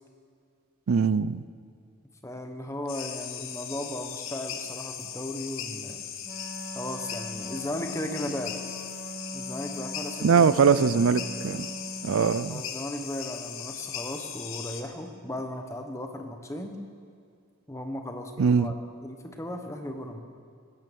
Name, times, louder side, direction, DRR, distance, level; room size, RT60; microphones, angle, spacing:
voice 1, 0.9-1.4 10.2-11.7 12.0-12.6 18.4-18.7, right 6 dB, 65° right, 16 dB, 0.4 m, -22 dB
voice 2, 2.2-6.0 6.7-8.6 9.3-10.6 10.9-11.0 12.5-16.8 17.7-18.8 19.0-20.2, left 1 dB, 15° left, 5 dB, 1.1 m, -36 dB
sound 1, 2.9-14.8, left 8 dB, 60° left, 1.0 m, -38 dB
Wind instrument woodwind instrument, 6.2-12.3, equal, 15° right, 2.1 m, -41 dB
18.0 x 9.5 x 7.0 m, 2.3 s
head